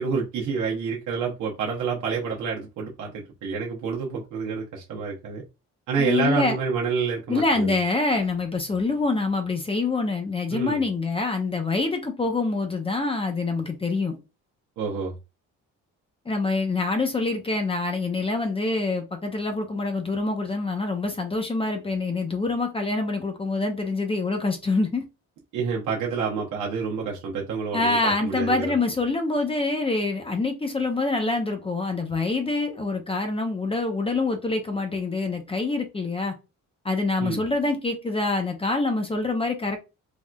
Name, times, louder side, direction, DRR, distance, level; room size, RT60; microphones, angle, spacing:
voice 1, 0.0-5.4 5.9-7.7 10.5-10.8 14.8-15.1 25.5-28.7 37.2-37.4, right 5 dB, 75° right, 0.8 m, -28 dB
voice 2, 6.0-6.6 7.3-14.2 16.3-25.0 27.7-36.3 36.8-39.8, left 3 dB, 20° left, 0.6 m, -25 dB
3.4 x 2.4 x 2.2 m
cardioid pair, 90°, 30 cm